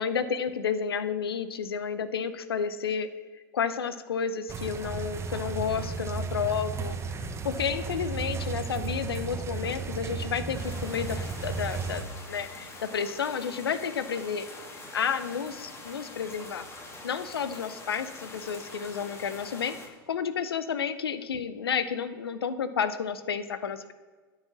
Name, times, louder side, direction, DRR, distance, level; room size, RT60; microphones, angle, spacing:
voice 1, 0.0-3.1 3.5-14.5 14.9-16.7 17.0-23.9, left 7 dB, 80° left, 12 dB, 0.6 m, -31 dB
sound 1, 4.5-12.0, right 4 dB, 20° right, 0.8 m, -34 dB
sound 2, 10.5-19.9, left 2 dB, 20° left, 1.9 m, -45 dB
9.5 x 4.8 x 7.1 m, 1.4 s
hypercardioid pair, 95°, 12 cm